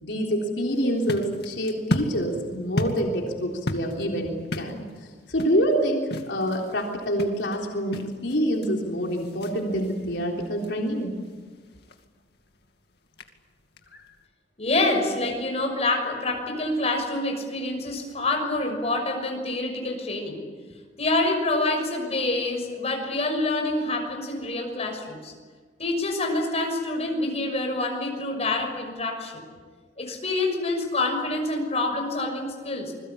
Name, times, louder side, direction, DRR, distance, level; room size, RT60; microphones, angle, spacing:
voice 1, 0.0-4.8 5.3-11.1, equal, 80° left, 0 dB, 3.7 m, -26 dB
sound 1, 0.7-14.3, left 1 dB, 65° left, 2.4 m, -36 dB
voice 2, 14.6-20.4 21.0-25.3 25.8-29.4 30.0-32.9, left 2 dB, 35° left, 2 dB, 6.3 m, -27 dB
27.5 x 21.5 x 8.6 m, 1.5 s
head